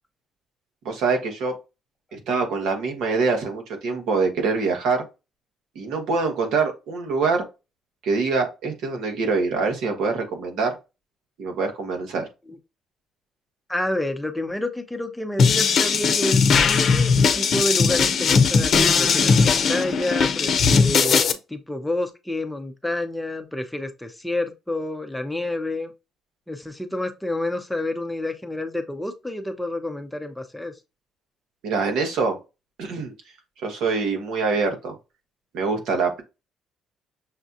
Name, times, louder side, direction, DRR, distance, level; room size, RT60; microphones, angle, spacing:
voice 1, 0.8-1.6 2.1-5.1 5.7-7.4 8.0-10.7 11.4-12.3 31.6-32.4 32.8-33.1 33.6-34.9 35.5-36.2, right 4 dB, 75° right, 1.4 m, -24 dB
voice 2, 13.7-25.9 26.5-30.7, left 1 dB, 5° left, 0.7 m, -29 dB
sound 1, 15.4-21.3, left 5 dB, 55° left, 0.7 m, -19 dB
6.4 x 2.3 x 2.6 m
cardioid pair, 85°, 0 cm